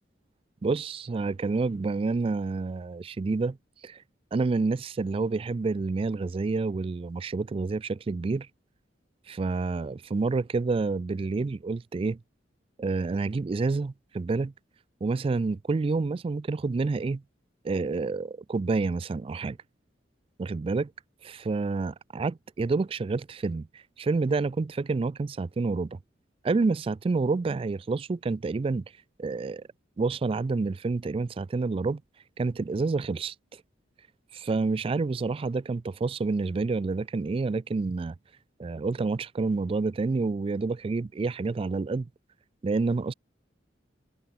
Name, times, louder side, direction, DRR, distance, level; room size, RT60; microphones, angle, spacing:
voice 1, 0.6-3.6 3.8-4.0 4.3-8.5 9.3-12.2 12.8-14.5 15.0-17.2 17.6-19.6 20.4-20.9 21.2-26.0 26.4-28.8 29.2-29.6 30.0-32.0 32.4-33.6 34.3-38.1 38.6-42.1 42.6-43.1, right 3 dB, 30° right, 0.3 m, -28 dB
head